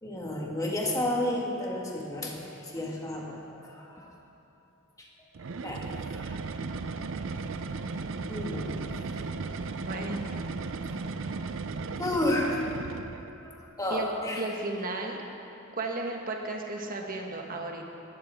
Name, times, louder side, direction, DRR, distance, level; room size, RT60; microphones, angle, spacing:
voice 1, 0.0-4.2 5.0-5.1 5.6-6.4 8.3-9.0 12.0-12.6 13.4-14.4, left 1 dB, 15° left, -2 dB, 1.7 m, -32 dB
sound 1, 5.4-13.4, right 4 dB, 65° right, 0.5 m, -35 dB
voice 2, 9.8-10.3 13.9-14.1 14.4-15.2 15.7-17.8, right 2 dB, 45° right, 1 dB, 1.4 m, -34 dB
19.5 x 12.0 x 3.6 m, 2.9 s
head